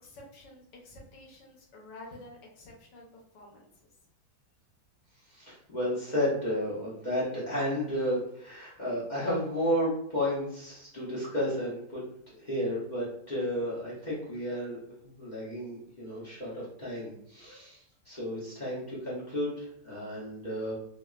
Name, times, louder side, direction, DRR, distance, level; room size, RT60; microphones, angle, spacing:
voice 1, 0.0-3.7, left 1 dB, 70° left, -1 dB, 1.4 m, -50 dB
voice 2, 5.3-12.0 12.4-14.8 15.2-20.7, equal, 50° left, -8 dB, 0.5 m, -32 dB
3.4 x 2.4 x 2.3 m, 0.72 s
omnidirectional pair, 2.1 m